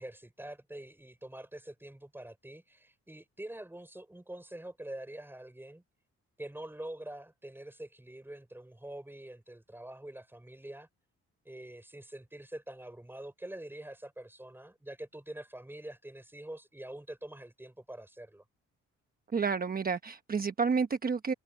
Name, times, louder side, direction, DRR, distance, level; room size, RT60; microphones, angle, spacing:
voice 1, 0.0-5.8 6.4-10.9 11.4-18.4, right 1 dB, 5° right, 5.8 m, -45 dB
voice 2, 19.3-21.3, right 5 dB, 30° right, 1.0 m, -30 dB
cardioid pair, 90°, 29 cm